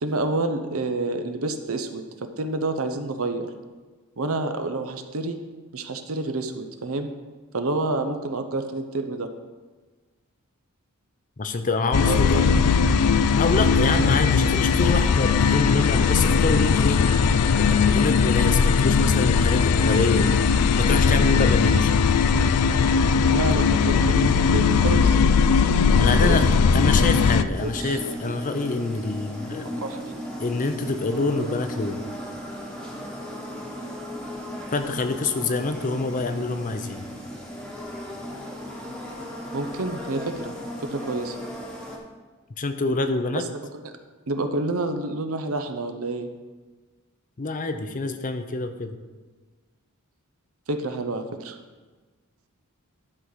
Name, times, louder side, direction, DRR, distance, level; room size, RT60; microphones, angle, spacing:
voice 1, 0.0-3.5 4.2-5.4 5.7-7.1 7.5-9.3 12.0-12.3 13.8-14.2 23.2-25.5 26.2-26.4 27.6-28.0 29.8-30.2 39.5-40.5 40.8-41.4 43.3-43.4 43.8-43.9 44.3-46.3 50.7-51.6, right 2 dB, 65° right, 7 dB, 0.8 m, -28 dB
voice 2, 11.4-12.7 13.4-17.1 17.6-20.4 20.8-22.1 26.0-26.5 26.7-29.7 30.4-32.0 34.7-37.1 42.6-43.4 47.4-48.9, left 3 dB, 35° left, 8 dB, 0.6 m, -26 dB
sound 1, 11.9-27.4, left 5 dB, 85° left, 0.4 m, -19 dB
sound 2, 27.5-42.0, equal, 5° left, 1.2 m, -36 dB
11.5 x 4.0 x 6.2 m, 1.3 s
head